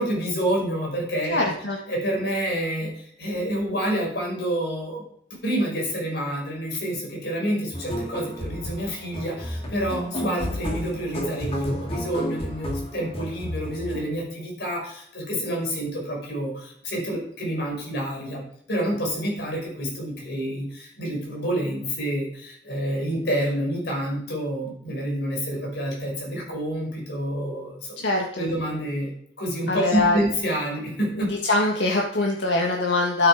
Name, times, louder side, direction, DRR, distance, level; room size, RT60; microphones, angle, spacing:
voice 1, 0.0-1.5 1.9-5.0 5.4-18.4 18.7-28.1 28.4-31.3, right 1 dB, 65° left, 0 dB, 5.7 m, -28 dB
voice 2, 1.3-1.8 28.0-28.5 29.7-30.2 31.1-33.3, left 2 dB, 90° left, 0 dB, 1.7 m, -23 dB
sound 1, 7.7-14.1, equal, 35° left, 2.5 m, -31 dB
12.5 x 8.1 x 4.9 m, 0.67 s
head